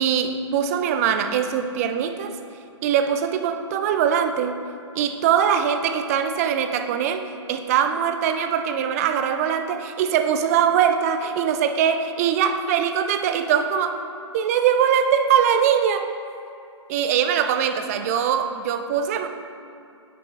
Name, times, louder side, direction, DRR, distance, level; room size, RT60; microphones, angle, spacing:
voice 1, 0.0-2.4 2.8-4.6 4.9-14.0 14.3-16.1 16.9-19.3, right 8 dB, 30° right, 8 dB, 0.4 m, -22 dB
9.3 x 5.9 x 2.4 m, 2.6 s
figure-of-eight pair, 130°, 16 cm